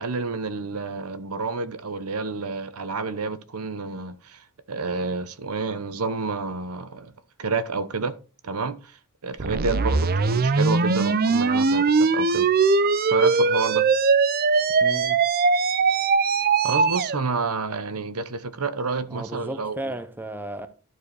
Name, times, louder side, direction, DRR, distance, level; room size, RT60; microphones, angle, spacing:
voice 1, 0.0-7.1 7.4-8.1 8.4-9.0 9.2-12.5 13.1-13.9 16.6-19.9, right 4 dB, 80° right, 1.0 m, -29 dB
sound 1, 9.4-17.2, right 4 dB, 45° right, 0.6 m, -21 dB
voice 2, 14.8-15.2 19.1-20.7, right 1 dB, 10° right, 0.7 m, -34 dB
12.0 x 4.7 x 4.8 m
head